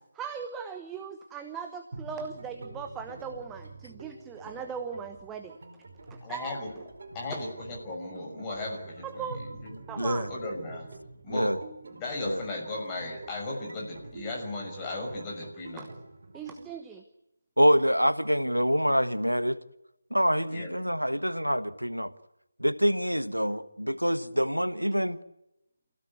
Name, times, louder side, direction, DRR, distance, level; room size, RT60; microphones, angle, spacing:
voice 1, 0.1-5.6 6.1-6.6 7.3-7.4 9.0-9.4 9.9-10.3 15.8-15.9 16.3-17.0, right 6 dB, 5° right, 1.0 m, -39 dB
sound 1, 1.9-16.7, right 2 dB, 45° right, 4.6 m, -47 dB
voice 2, 6.2-6.7 7.1-9.2 9.6-9.8 10.3-10.9 11.2-11.5 11.9-15.8 20.5-20.7, left 2 dB, 15° left, 6.1 m, -36 dB
voice 3, 10.0-10.3 11.3-11.6 12.2-12.4 17.6-19.6 20.1-22.1 22.6-25.2, equal, 90° right, 1.4 m, -26 dB
28.0 x 16.5 x 9.6 m
figure-of-eight pair, 155°, 0 cm